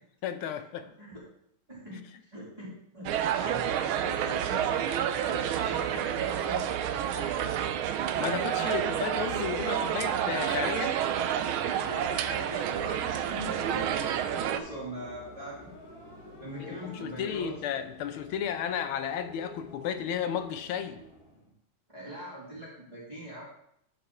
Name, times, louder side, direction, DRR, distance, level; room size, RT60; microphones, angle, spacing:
voice 1, 0.2-0.9 8.2-11.0 16.6-21.0, left 8 dB, 80° left, 1.6 m, -33 dB
voice 2, 1.7-2.1 2.3-3.1 3.4-7.6 11.6-15.6 16.4-17.6 21.9-23.4, equal, 15° right, 2.6 m, -41 dB
sound 1, 3.1-14.6, right 10 dB, 80° right, 1.4 m, -29 dB
sound 2, 12.2-21.5, left 2 dB, 45° left, 1.8 m, -50 dB
12.5 x 4.9 x 3.6 m
omnidirectional pair, 2.4 m